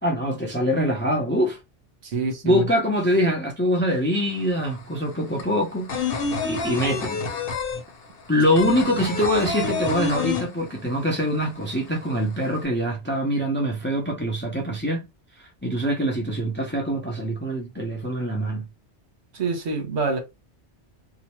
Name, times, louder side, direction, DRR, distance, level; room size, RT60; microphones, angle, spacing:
voice 1, 0.0-1.6 2.4-6.2 6.4-7.2 8.3-15.0 15.4-18.7, equal, 15° left, 0.4 m, -24 dB
voice 2, 2.0-2.6 19.3-20.2, right 4 dB, 75° right, 1.2 m, -26 dB
sound 1, 4.2-4.3 4.5-11.1 11.4-11.5 11.8-12.6, left 4 dB, 60° left, 0.9 m, -28 dB
2.9 x 2.1 x 2.9 m
omnidirectional pair, 1.1 m